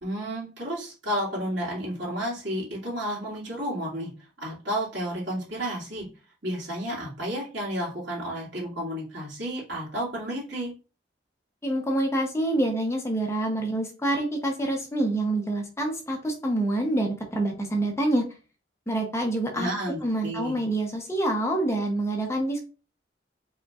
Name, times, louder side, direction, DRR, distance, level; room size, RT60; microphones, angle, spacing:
voice 1, 0.0-4.1 4.4-6.1 6.4-10.7 19.5-20.5, equal, 70° right, -5 dB, 2.5 m, -31 dB
voice 2, 11.6-18.2 18.9-19.7 20.0-22.6, right 1 dB, 15° left, 2 dB, 0.7 m, -26 dB
5.0 x 3.7 x 2.4 m, 0.33 s
head